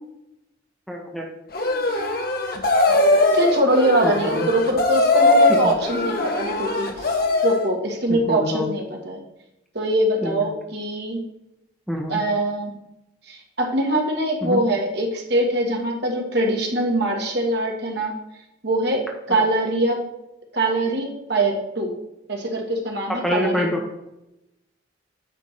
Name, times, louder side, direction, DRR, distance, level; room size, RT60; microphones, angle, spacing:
voice 1, 0.9-1.3 4.0-4.5 5.5-5.6 8.1-8.7 10.2-10.4 11.9-12.2 14.4-14.6 19.3-19.4 23.1-23.8, equal, ahead, -1 dB, 0.9 m, -26 dB
sound 1, 1.5-7.7, left 2 dB, 50° left, 1.1 m, -20 dB
voice 2, 3.3-7.2 7.4-9.2 9.7-11.2 12.1-12.7 13.3-18.1 18.6-19.0 19.3-20.0 20.5-21.9 22.3-23.7, right 1 dB, 55° right, 1 dB, 1.6 m, -23 dB
9.3 x 3.5 x 6.5 m, 0.87 s
head